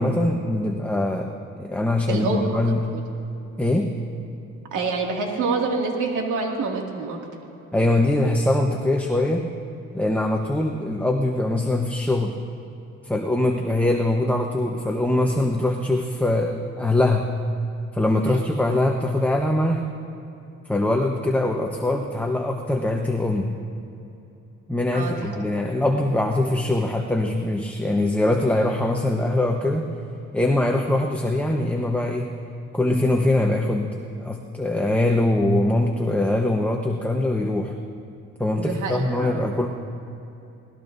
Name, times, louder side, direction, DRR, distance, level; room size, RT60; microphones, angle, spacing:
voice 1, 0.0-1.3 1.6-2.8 3.6-3.9 7.7-9.5 9.9-12.4 13.0-17.3 17.9-19.9 20.6-23.5 24.7-29.9 30.3-32.4 32.7-37.7 38.4-39.7, left 1 dB, 5° left, 1 dB, 1.1 m, -22 dB
voice 2, 2.1-2.5 2.9-3.0 4.7-7.2 18.2-18.5 24.9-25.2 38.6-39.4, right 4 dB, 85° right, 0 dB, 2.4 m, -26 dB
23.0 x 19.5 x 2.7 m, 2.9 s
cardioid pair, 90°, 30 cm